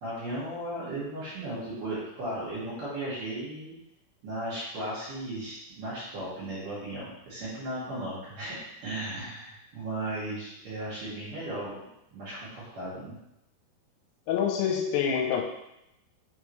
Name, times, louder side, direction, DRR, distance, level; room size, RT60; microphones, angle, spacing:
voice 1, 0.0-3.7 4.2-11.8 12.1-13.1, right 1 dB, 50° right, -10 dB, 2.9 m, -36 dB
voice 2, 14.3-15.4, left 7 dB, 85° left, 2 dB, 3.2 m, -26 dB
9.0 x 3.7 x 3.1 m, 0.86 s
omnidirectional pair, 5.8 m